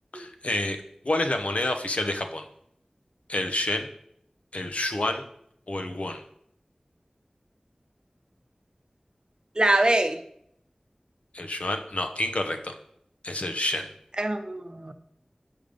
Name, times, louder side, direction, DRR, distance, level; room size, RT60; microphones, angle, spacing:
voice 1, 0.1-2.4 3.3-3.9 4.5-5.2 5.7-6.2 11.3-12.7 13.2-13.9, left 1 dB, 70° left, 5 dB, 0.8 m, -28 dB
voice 2, 9.6-10.2 14.2-14.9, right 1 dB, 40° right, 8 dB, 0.7 m, -24 dB
6.5 x 5.3 x 5.3 m, 0.72 s
wide cardioid pair, 50°, 2 cm